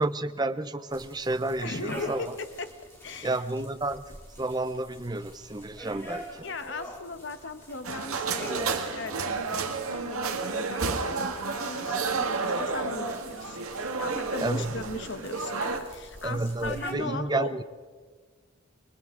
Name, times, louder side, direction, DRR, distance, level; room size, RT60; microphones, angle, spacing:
voice 1, 0.0-2.3 3.2-6.5 14.4-14.7 16.2-17.6, right 2 dB, 20° right, 12 dB, 0.6 m, -31 dB
sound 1, 0.9-16.9, equal, 10° left, 3.0 m, -46 dB
voice 2, 1.6-2.7 3.0-3.4 6.4-17.5, left 3 dB, 55° left, 9 dB, 1.2 m, -38 dB
sound 2, 7.8-15.8, right 4 dB, 85° right, 1.8 m, -31 dB
30.0 x 23.5 x 3.8 m, 1.5 s
head